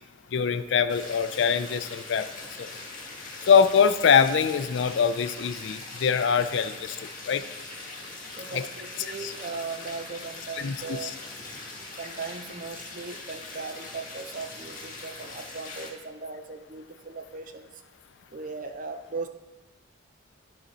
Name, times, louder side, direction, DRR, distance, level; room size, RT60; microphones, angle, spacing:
voice 1, 0.3-2.3 2.6-2.7 3.4-7.4 8.5-8.6 9.2-9.3 10.5-11.1, left 6 dB, 60° left, 11 dB, 0.4 m, -23 dB
sound 1, 0.9-15.9, left 2 dB, 40° left, 1.5 m, -41 dB
voice 2, 8.3-11.1 12.0-17.8 18.3-19.3, right 4 dB, 40° right, 7 dB, 0.6 m, -38 dB
11.5 x 3.9 x 4.1 m, 1.2 s
head